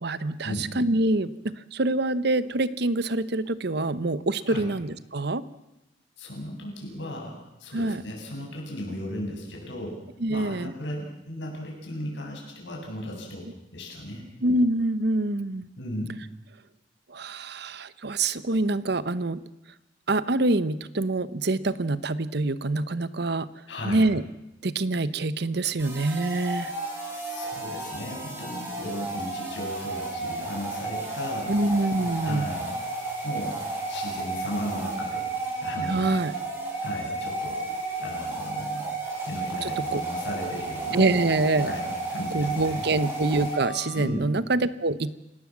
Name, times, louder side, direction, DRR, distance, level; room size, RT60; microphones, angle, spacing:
voice 1, 0.0-5.4 7.7-8.0 10.2-10.7 14.4-15.7 17.1-19.4 20.1-23.5 23.8-24.2 24.6-26.7 31.5-32.5 35.8-36.3 39.6-40.0 40.9-41.7 42.3-45.1, right 2 dB, 60° right, 16 dB, 1.0 m, -25 dB
voice 2, 6.2-10.0 10.3-14.3 15.8-16.2 23.7-24.1 27.0-31.6 32.2-32.8 33.2-33.6 33.9-36.1 36.8-37.6 38.0-38.9 39.2-41.0 41.6-42.8 43.9-44.3, left 1 dB, 70° left, -1 dB, 7.7 m, -36 dB
sound 1, 25.8-44.0, right 3 dB, 15° right, 7.2 m, -33 dB
30.0 x 18.0 x 7.4 m, 0.92 s
head